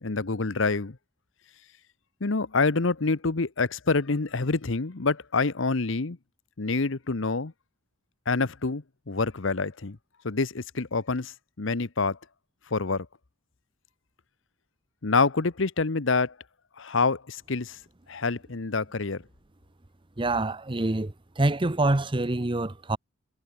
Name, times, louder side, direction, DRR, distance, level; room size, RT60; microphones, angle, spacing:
voice 1, 0.0-1.0 2.2-6.2 6.6-7.5 8.3-10.0 10.2-12.2 12.7-13.1 15.0-16.3 16.8-17.8 18.1-19.2, left 4 dB, 65° left, 1.0 m, -27 dB
voice 2, 20.2-23.0, right 2 dB, 25° right, 0.8 m, -26 dB
head